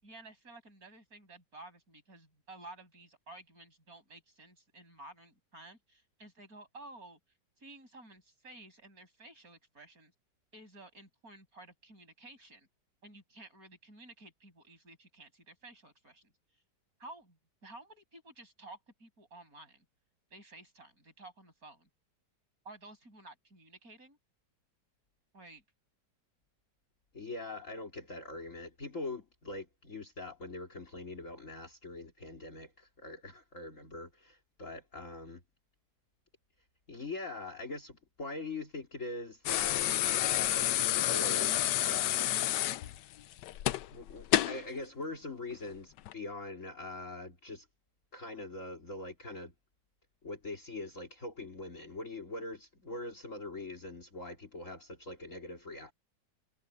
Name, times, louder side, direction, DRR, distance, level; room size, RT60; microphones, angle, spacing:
voice 1, 0.0-7.2 7.6-10.1 10.5-12.7 13.0-16.3 17.0-19.8 20.3-21.9 22.6-24.2 25.3-25.6, right 2 dB, 55° right, 8.3 m, -53 dB
voice 2, 27.1-35.4 36.9-42.3 42.8-43.0 43.9-47.7 48.1-49.5 50.2-55.9, left 2 dB, 45° left, 3.1 m, -43 dB
sound 1, 39.5-44.6 46.0-46.1, left 13 dB, 80° left, 1.3 m, -29 dB
omnidirectional pair, 1.9 m